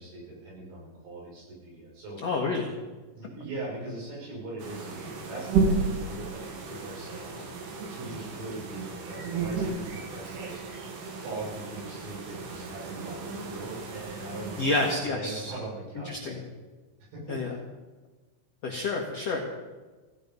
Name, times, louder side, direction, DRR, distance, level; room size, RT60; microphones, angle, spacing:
voice 1, 0.0-2.3 3.1-7.4 7.9-10.7 11.1-16.4 17.1-17.6, right 2 dB, 90° right, -4 dB, 8.6 m, -41 dB
voice 2, 2.2-2.7 14.6-15.5 16.0-16.4 17.3-17.5 18.6-19.4, left 3 dB, 80° left, 0 dB, 1.4 m, -29 dB
sound 1, 4.6-15.0, right 4 dB, 65° right, 3.6 m, -33 dB
16.5 x 16.0 x 5.4 m, 1.3 s
omnidirectional pair, 5.7 m